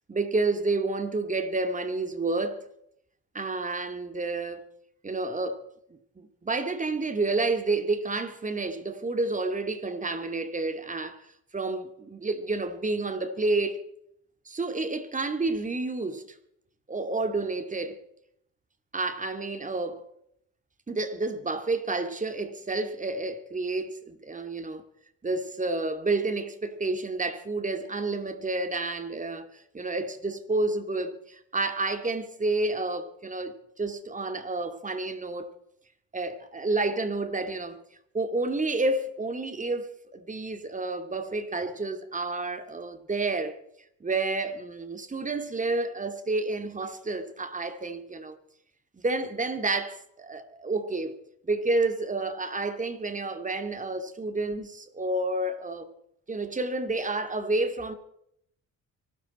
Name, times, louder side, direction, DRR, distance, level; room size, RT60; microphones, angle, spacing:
voice 1, 0.1-2.6 3.3-4.6 5.0-5.6 6.2-11.3 11.5-13.8 14.5-16.2 16.9-18.0 18.9-20.0 20.9-24.8 25.2-35.5 36.1-37.8 38.1-43.6 44.0-48.4 48.9-51.2 51.4-55.9 56.3-57.9, right 3 dB, 25° right, 2.3 m, -30 dB
23.5 x 13.0 x 4.3 m
cardioid pair, 90°, 30 cm